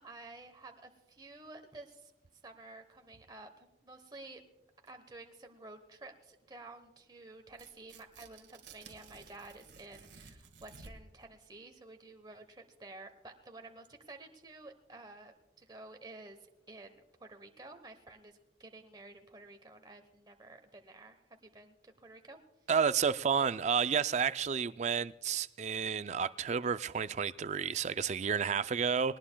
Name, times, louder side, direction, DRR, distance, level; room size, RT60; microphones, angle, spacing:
voice 1, 0.0-2.1 2.4-4.4 4.9-16.4 16.7-22.4, right 2 dB, 25° right, 0.9 m, -52 dB
Tearing, 7.5-11.2, right 4 dB, 85° right, 1.5 m, -55 dB
voice 2, 22.7-29.2, right 6 dB, 40° right, 0.3 m, -31 dB
20.5 x 18.5 x 2.2 m
head